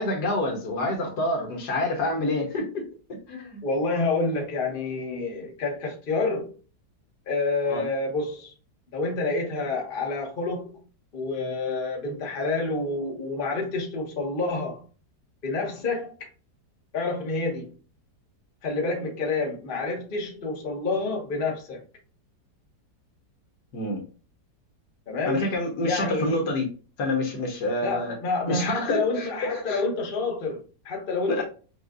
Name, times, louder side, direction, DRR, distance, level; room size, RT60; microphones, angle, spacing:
voice 1, 0.0-2.8 3.3-3.6 7.7-7.8 23.7-24.0 25.2-26.6 27.0-28.1 28.5-29.8 31.3-31.4, left 1 dB, 70° left, 1.6 m, -27 dB
voice 2, 3.6-6.5 7.3-8.5 8.9-10.8 11.1-14.8 15.4-16.1 16.9-17.7 18.6-21.8 25.1-25.5 25.8-26.4 27.8-31.4, left 3 dB, 35° left, 1.1 m, -28 dB
6.5 x 2.4 x 2.4 m
omnidirectional pair, 1.8 m